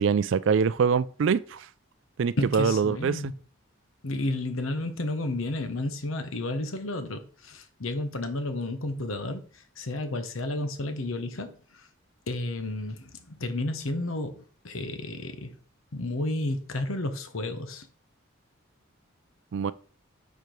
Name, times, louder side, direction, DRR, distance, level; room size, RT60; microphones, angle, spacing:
voice 1, 0.0-1.7 2.2-3.3 19.5-19.7, right 6 dB, 60° right, 0.3 m, -24 dB
voice 2, 2.4-3.3 4.0-11.9 12.3-15.6 15.9-17.9, left 2 dB, 75° left, 0.9 m, -32 dB
4.7 x 4.6 x 5.2 m
head